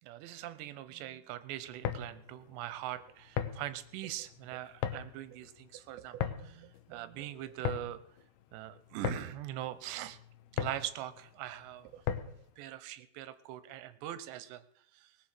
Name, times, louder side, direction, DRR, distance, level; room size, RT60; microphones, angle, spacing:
voice 1, 0.0-8.0 8.5-10.2 10.5-14.6 14.9-15.1, right 13 dB, 90° right, 14 dB, 3.1 m, -42 dB
sound 1, 1.6-12.5, left 10 dB, 75° left, 2.7 m, -39 dB
19.0 x 6.9 x 7.6 m, 0.68 s
omnidirectional pair, 4.9 m